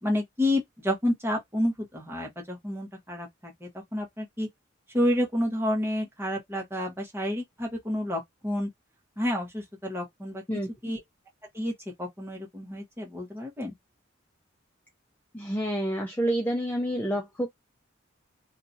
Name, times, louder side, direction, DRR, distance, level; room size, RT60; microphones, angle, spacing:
voice 1, 0.0-4.5 4.9-8.7 9.2-10.4 10.8-11.0 11.5-11.7 12.0-13.7, left 1 dB, 10° right, 1.1 m, -29 dB
voice 2, 15.3-17.5, right 1 dB, 10° left, 0.5 m, -28 dB
2.8 x 2.4 x 2.6 m
head